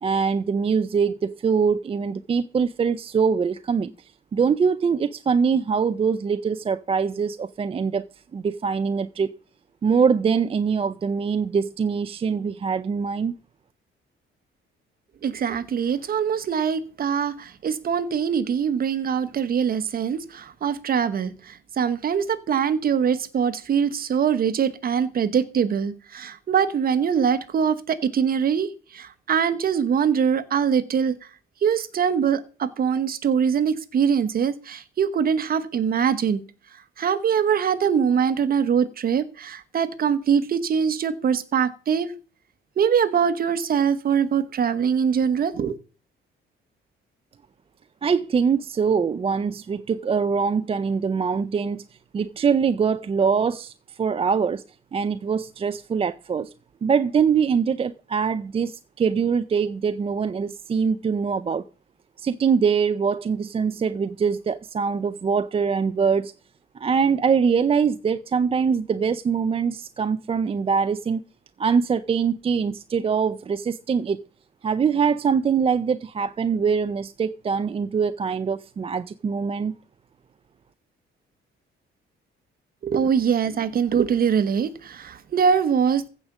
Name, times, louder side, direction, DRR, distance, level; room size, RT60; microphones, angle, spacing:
voice 1, 0.0-3.9 4.3-8.0 8.3-9.4 9.8-13.3 48.0-51.8 52.1-53.7 54.0-54.6 54.9-56.5 56.8-61.6 62.2-66.3 66.8-71.2 71.6-74.2 74.6-79.7, right 6 dB, 25° right, 0.5 m, -23 dB
voice 2, 15.2-31.1 31.6-36.4 37.0-42.1 42.8-45.8 82.8-86.1, right 7 dB, 45° right, 1.2 m, -23 dB
15.0 x 5.1 x 7.3 m
cardioid pair, 140°, 21 cm